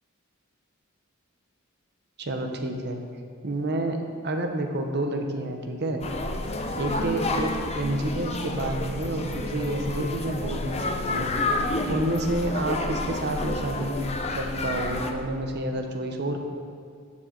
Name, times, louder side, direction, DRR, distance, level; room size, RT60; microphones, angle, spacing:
voice 1, 2.2-3.0 3.4-6.0 6.7-11.3 11.9-14.0 14.3-16.4, right 1 dB, 55° right, 4 dB, 1.0 m, -29 dB
sound 1, 6.0-15.1, left 2 dB, 30° left, 0.7 m, -29 dB
10.5 x 7.4 x 4.0 m, 2.3 s
head